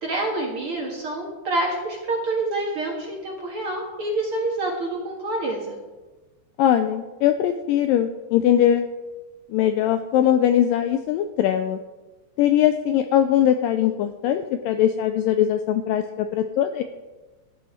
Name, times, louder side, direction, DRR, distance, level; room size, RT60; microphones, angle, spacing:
voice 1, 0.0-5.8, right 2 dB, 50° right, -1 dB, 1.9 m, -27 dB
voice 2, 6.6-8.9 9.5-11.8 12.4-16.8, left 10 dB, 80° left, 8 dB, 2.0 m, -21 dB
15.5 x 10.0 x 4.5 m, 1.2 s
omnidirectional pair, 4.5 m